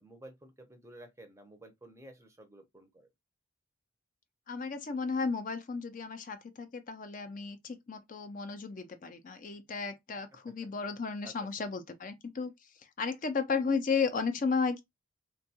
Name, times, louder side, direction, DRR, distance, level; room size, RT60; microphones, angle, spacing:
voice 1, 0.0-3.1 10.5-10.6 11.2-11.7, right 1 dB, 15° right, 0.5 m, -53 dB
voice 2, 4.5-12.5 12.8-14.8, left 5 dB, 40° left, 0.4 m, -34 dB
3.5 x 2.3 x 2.7 m
head